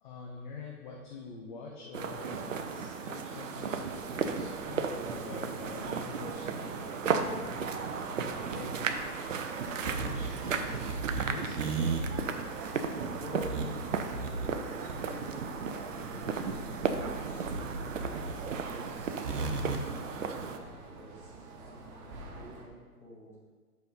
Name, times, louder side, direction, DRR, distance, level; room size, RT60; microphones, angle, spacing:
voice 1, 0.0-8.9 9.1-9.4 9.7-11.6, left 3 dB, 30° left, -1 dB, 0.8 m, -46 dB
sound 1, 1.9-20.6, right 5 dB, 55° right, 0.7 m, -35 dB
sound 2, 3.5-22.6, right 3 dB, 15° right, 0.7 m, -49 dB
sound 3, 8.8-19.8, right 4 dB, 75° right, 1.1 m, -36 dB
voice 2, 12.7-13.6 14.1-17.9 18.5-19.7 20.0-23.3, equal, 5° left, -9 dB, 2.3 m, -49 dB
5.8 x 5.3 x 5.3 m, 1.5 s
figure-of-eight pair, 125°, 47 cm